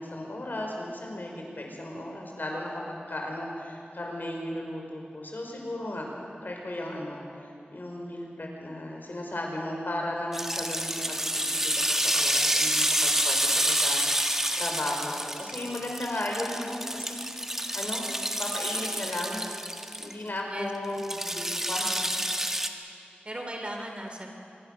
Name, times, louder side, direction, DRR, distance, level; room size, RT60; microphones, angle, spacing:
voice 1, 0.0-6.1 6.4-18.1 18.4-19.4 20.0-21.1 21.3-22.1, left 1 dB, 60° left, 0 dB, 5.2 m, -35 dB
sound 1, 10.3-20.1 21.0-22.7, equal, 10° right, 1.6 m, -28 dB
voice 2, 21.1-21.6 23.2-24.3, right 1 dB, 30° right, 3 dB, 3.6 m, -38 dB
25.5 x 22.5 x 6.7 m, 2.7 s
wide cardioid pair, 70°, 4 cm